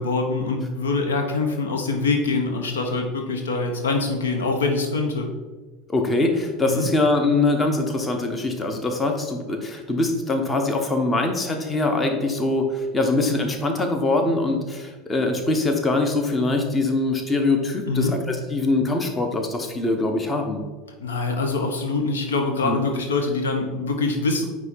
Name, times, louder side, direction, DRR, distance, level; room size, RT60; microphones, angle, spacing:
voice 1, 0.0-5.3 6.7-6.9 17.9-18.1 21.0-24.5, left 3 dB, 70° left, 4 dB, 0.8 m, -24 dB
voice 2, 5.9-20.6 22.6-22.8, left 2 dB, 20° left, 5 dB, 1.0 m, -23 dB
9.2 x 3.1 x 4.5 m, 1.3 s
figure-of-eight pair, 75°, 0 cm